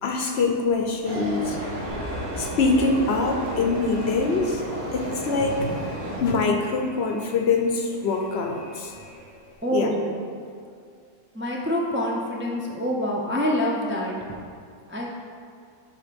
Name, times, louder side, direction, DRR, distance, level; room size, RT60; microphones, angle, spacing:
voice 1, 0.0-1.6 2.4-4.6 4.9-8.9 9.7-9.9, left 3 dB, 60° left, 3 dB, 0.8 m, -24 dB
sound 1, 1.0-6.2, right 1 dB, 65° right, 1.8 m, -33 dB
Alarm, 1.9-9.6, equal, 35° right, 2.1 m, -43 dB
voice 2, 9.6-10.1 11.3-14.2 14.9-15.1, equal, 15° right, -3 dB, 0.4 m, -26 dB
9.9 x 3.3 x 5.1 m, 2.3 s
omnidirectional pair, 1.4 m